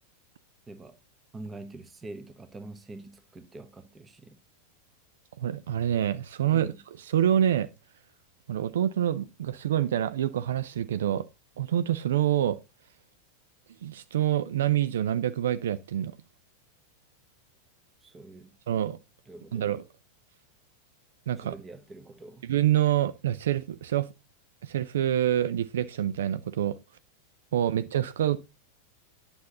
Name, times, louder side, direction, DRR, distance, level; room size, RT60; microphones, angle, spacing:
voice 1, 0.7-1.0 1.3-4.4 6.5-6.8 18.0-18.6 19.3-19.8 21.4-22.5, right 2 dB, 15° right, 1.1 m, -45 dB
voice 2, 5.4-6.7 7.1-7.7 8.5-11.2 11.6-12.6 13.8-16.1 18.7-19.0 19.5-19.8 21.3-21.5 22.5-24.1 24.6-26.8 27.5-28.4, right 11 dB, 60° right, 0.5 m, -26 dB
9.6 x 6.9 x 3.8 m
figure-of-eight pair, 90°, 0 cm